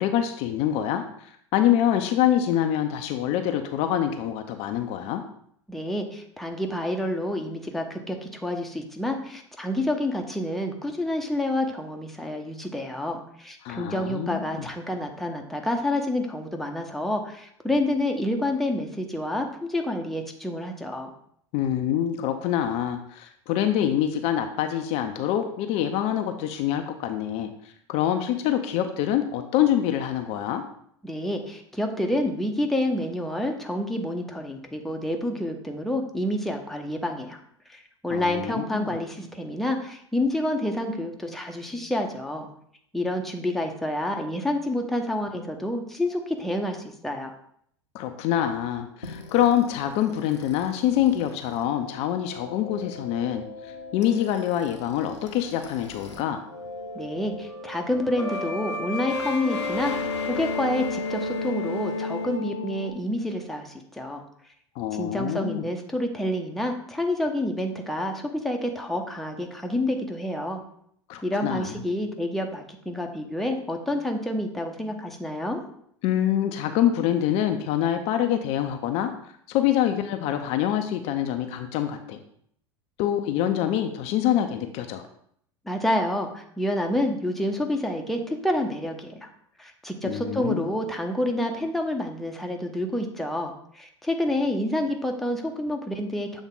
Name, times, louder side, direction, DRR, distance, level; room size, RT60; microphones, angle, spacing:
voice 1, 0.0-5.2 13.6-14.4 21.5-27.5 27.9-30.6 38.1-39.0 47.9-56.4 64.8-65.6 71.1-71.8 76.0-79.1 79.5-82.2 83.0-85.0 90.0-90.7, left 11 dB, 45° left, 6 dB, 0.5 m, -25 dB
voice 2, 5.7-21.1 31.0-37.4 37.7-42.5 42.9-47.3 56.9-64.2 64.9-70.6 71.2-75.6 85.6-89.3 89.6-96.4, left 1 dB, ahead, 2 dB, 0.7 m, -28 dB
sound 1, 49.0-56.2 56.5-62.9, left 3 dB, 80° left, 0.8 m, -34 dB
7.3 x 3.5 x 3.8 m, 0.67 s
figure-of-eight pair, 80°, 15 cm